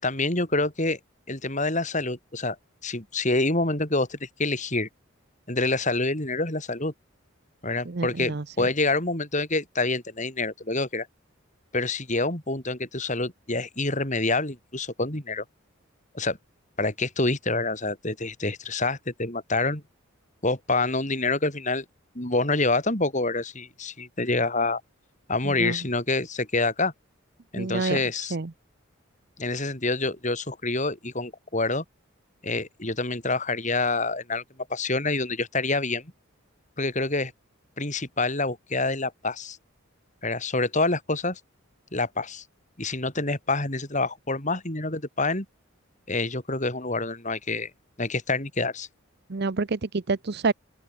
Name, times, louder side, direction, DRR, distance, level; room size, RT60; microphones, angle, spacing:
voice 1, 0.0-1.0 1.3-2.6 2.8-4.9 5.5-6.9 7.6-11.1 11.7-15.4 16.1-16.4 16.8-19.8 20.4-21.8 22.1-24.8 25.3-26.9 27.5-28.4 29.4-31.8 32.4-34.4 34.7-36.1 36.8-37.3 37.8-39.6 40.2-41.4 41.9-42.4 42.8-45.4 46.1-47.7 48.0-48.9, left 2 dB, 35° left, 4.8 m, -27 dB
voice 2, 7.9-8.4 25.6-25.8 27.6-28.0 28.3-28.5 49.3-49.8 50.1-50.5, right 3 dB, 50° right, 0.7 m, -27 dB
open air
head